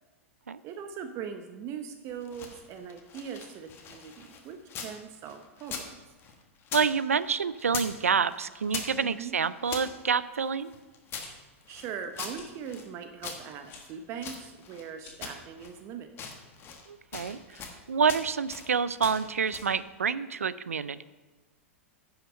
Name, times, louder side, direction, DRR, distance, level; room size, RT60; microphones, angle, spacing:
voice 1, 0.6-6.0 9.0-9.3 11.7-16.3, right 7 dB, 40° right, 7 dB, 0.7 m, -40 dB
sound 1, 2.1-5.0 5.3-6.9 7.1-8.0 8.3-9.9 10.4-12.9 13.2-14.9 15.2-15.8 16.1-16.9 17.1-17.8 18.1-18.7 19.0-19.8, left 6 dB, 30° left, 1.3 m, -41 dB
voice 2, 6.7-10.7 16.9-17.4 17.9-21.0, right 6 dB, 85° right, 16 dB, 0.4 m, -28 dB
sound 2, 11.2-11.3 12.3-12.5 13.6-13.8 14.9-15.3, left 5 dB, 50° left, 2.4 m, -50 dB
9.7 x 5.8 x 5.3 m, 1.2 s
hypercardioid pair, 100°, 7 cm